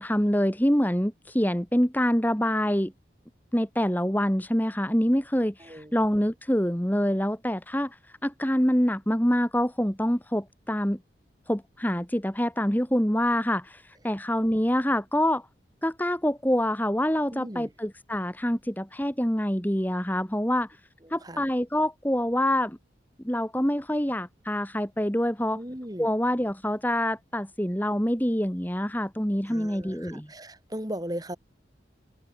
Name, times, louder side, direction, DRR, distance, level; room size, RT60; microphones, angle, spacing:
voice 1, 0.0-2.9 3.5-8.0 8.2-11.0 11.5-15.5 15.8-20.8 21.1-22.8 23.2-25.6 26.0-30.3, equal, 10° left, 2.6 m, -26 dB
voice 2, 5.6-5.9 17.3-17.7 21.2-21.4 25.5-26.1 29.5-31.4, equal, 20° right, 5.4 m, -37 dB
head